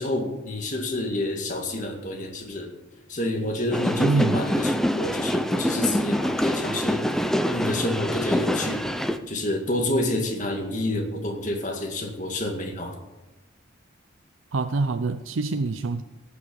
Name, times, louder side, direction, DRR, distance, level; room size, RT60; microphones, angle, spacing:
voice 1, 0.0-2.7 3.1-7.1 7.4-8.8 9.3-12.9, left 1 dB, 40° left, 1 dB, 2.0 m, -28 dB
sound 1, 3.7-9.2, equal, ahead, 0.6 m, -25 dB
voice 2, 4.0-4.4 14.5-16.0, right 3 dB, 90° right, 9 dB, 0.6 m, -25 dB
18.0 x 6.4 x 7.0 m, 1.1 s
head